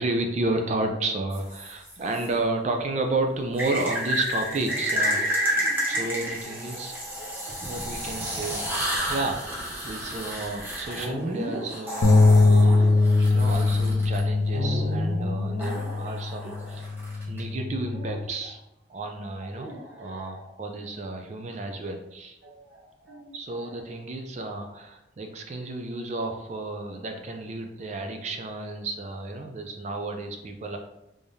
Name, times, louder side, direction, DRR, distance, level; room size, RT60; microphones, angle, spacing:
voice 1, 0.0-5.6 5.9-6.9 7.6-9.6 9.8-12.1 12.4-12.9 13.3-17.0 17.3-18.6 18.9-19.7 20.0-22.4 23.3-30.8, right 2 dB, 40° right, 4 dB, 0.3 m, -32 dB
sound 1, 1.3-2.3 3.6-14.2 15.6-17.4, equal, 10° right, 0.9 m, -31 dB
sound 2, 4.5-17.1 17.9-18.5 19.4-20.9 22.4-23.8, right 1 dB, 75° right, 1.1 m, -38 dB
sound 3, 12.0-18.3, left 3 dB, 85° left, 0.5 m, -22 dB
3.4 x 3.4 x 2.7 m, 0.89 s
head